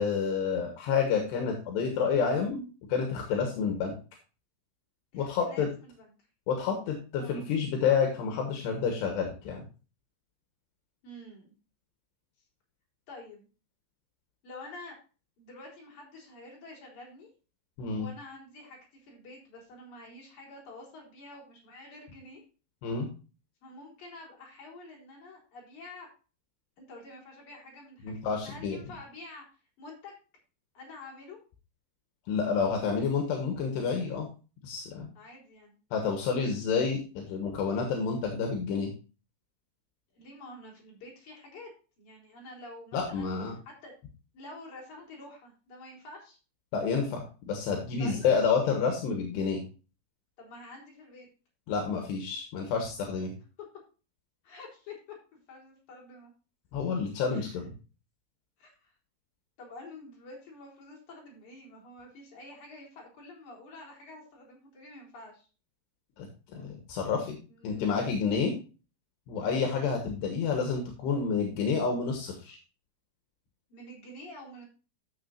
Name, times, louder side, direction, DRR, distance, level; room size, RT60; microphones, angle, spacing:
voice 1, 0.0-2.6 2.9-3.9 5.1-5.7 6.5-9.6 17.8-18.1 22.8-23.1 28.0-28.8 32.3-34.3 34.6-35.1 35.9-38.9 42.9-43.5 46.7-47.2 47.5-49.6 51.7-53.3 56.7-57.7 66.2-66.3 66.5-67.4 67.6-68.6 69.3-72.6, left 5 dB, 75° left, 3 dB, 3.3 m, -29 dB
voice 2, 5.1-6.1 7.2-7.4 11.0-11.5 13.1-13.5 14.4-15.0 15.4-17.3 17.9-22.4 23.6-26.1 26.8-28.1 28.4-29.5 29.8-30.1 30.7-31.4 35.1-35.8 40.1-41.7 42.0-43.3 43.6-43.9 44.3-46.4 48.0-48.2 50.4-51.3 54.4-56.3 57.3-57.6 58.6-58.9 59.6-65.5 67.5-68.1 73.7-74.6, left 2 dB, 45° left, -3 dB, 4.9 m, -48 dB
13.5 x 6.7 x 2.6 m, 0.34 s
omnidirectional pair, 5.0 m